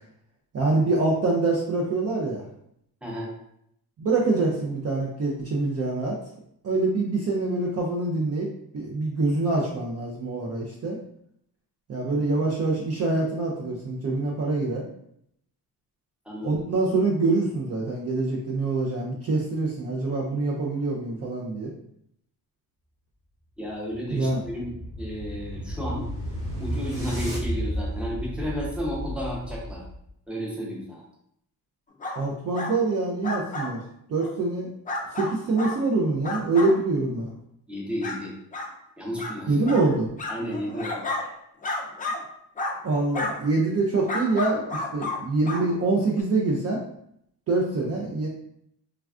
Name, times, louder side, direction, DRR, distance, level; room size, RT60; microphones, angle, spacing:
voice 1, 0.5-2.4 4.0-6.2 6.6-8.5 8.7-11.0 11.9-14.9 16.4-21.7 24.1-24.4 32.2-33.8 34.1-34.7 35.1-37.3 39.5-40.1 42.8-46.8 47.5-48.3, right 3 dB, 40° right, -2 dB, 0.4 m, -25 dB
voice 2, 3.0-3.3 12.1-12.3 16.3-16.6 23.6-26.1 26.6-29.8 30.3-31.0 37.7-38.3 39.0-39.6 40.3-41.0, equal, 5° right, -4 dB, 0.7 m, -32 dB
sound 1, 23.7-30.0, equal, 80° right, 1.2 m, -33 dB
sound 2, 32.0-32.2 32.5-32.7 33.2-33.7 34.2-34.3 34.9-35.8 36.2-36.7 37.3-37.4 38.0-38.2 38.5-38.7 39.2-39.3 39.6-39.8 40.2-41.2 41.6-42.2 42.6-42.7 43.1-43.3 44.1-45.2 45.4-45.6 46.2-46.3, left 2 dB, 20° left, 0.3 m, -31 dB
3.3 x 2.3 x 2.4 m, 0.74 s
cardioid pair, 115°, 40 cm